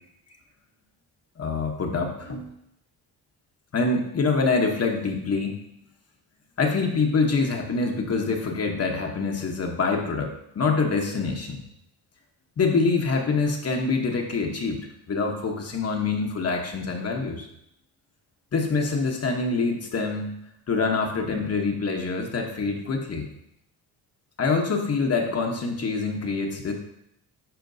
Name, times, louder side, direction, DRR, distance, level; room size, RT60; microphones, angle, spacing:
voice 1, 1.4-2.5 3.7-5.6 6.6-11.6 12.6-14.8 15.1-17.5 18.5-20.4 20.7-23.3 24.4-26.7, left 4 dB, 40° left, 2 dB, 1.0 m, -25 dB
10.5 x 4.3 x 2.7 m, 0.78 s
cardioid pair, 90°, 39 cm